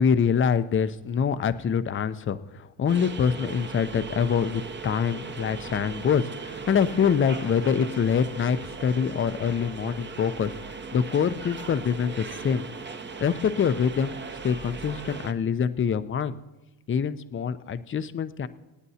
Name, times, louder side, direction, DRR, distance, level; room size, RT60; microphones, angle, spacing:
voice 1, 0.0-10.5 10.9-12.7 13.2-14.1 14.4-16.4 16.9-18.5, left 7 dB, 25° left, 12 dB, 0.6 m, -25 dB
sound 1, 2.9-15.3, right 4 dB, 25° right, 0.8 m, -38 dB
26.0 x 8.9 x 2.8 m, 1.1 s
supercardioid pair, 85°, 48 cm